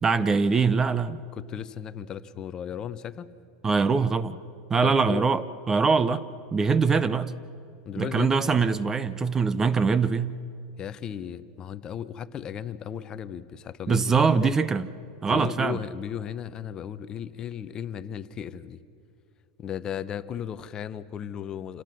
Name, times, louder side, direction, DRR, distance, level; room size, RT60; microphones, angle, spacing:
voice 1, 0.0-1.2 3.6-4.4 4.7-6.3 6.5-7.3 8.0-10.3 13.9-14.9 15.2-15.8, right 5 dB, 15° right, 0.5 m, -23 dB
voice 2, 1.3-3.3 4.8-5.3 7.8-8.6 10.8-14.5 15.3-18.8 19.6-21.8, left 9 dB, 25° left, 0.8 m, -35 dB
27.5 x 18.0 x 6.2 m
supercardioid pair, 145°, 3 cm